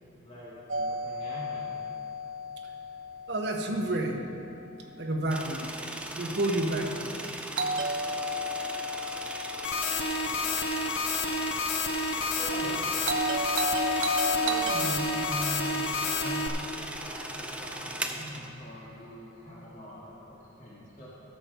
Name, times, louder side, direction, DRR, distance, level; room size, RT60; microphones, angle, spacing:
voice 1, 0.2-1.7 12.1-13.0 14.4-21.1, equal, 40° left, -9 dB, 2.4 m, -41 dB
Doorbell, 0.7-4.7 7.6-11.8 13.0-17.5, equal, 85° right, 0.8 m, -34 dB
voice 2, 3.3-4.3 5.0-5.8 6.1-7.2, right 1 dB, 60° right, 2 dB, 1.1 m, -30 dB
sound 1, 5.3-18.5, right 1 dB, 5° right, 0.5 m, -39 dB
sound 2, 9.6-16.5, left 3 dB, 70° left, 0.7 m, -30 dB
12.0 x 6.9 x 5.6 m, 2.8 s
head